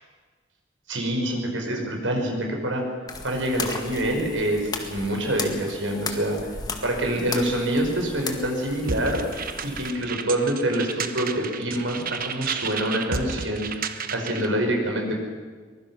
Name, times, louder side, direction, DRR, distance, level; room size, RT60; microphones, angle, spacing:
voice 1, 0.9-2.8 3.2-6.5 6.8-9.3 9.6-15.1, right 1 dB, 85° right, 2 dB, 5.4 m, -26 dB
sound 1, 3.1-9.9, left 3 dB, 20° left, 1.9 m, -36 dB
sound 2, 8.9-14.5, right 5 dB, 50° right, 1.2 m, -32 dB
23.5 x 21.0 x 6.3 m, 1.5 s
head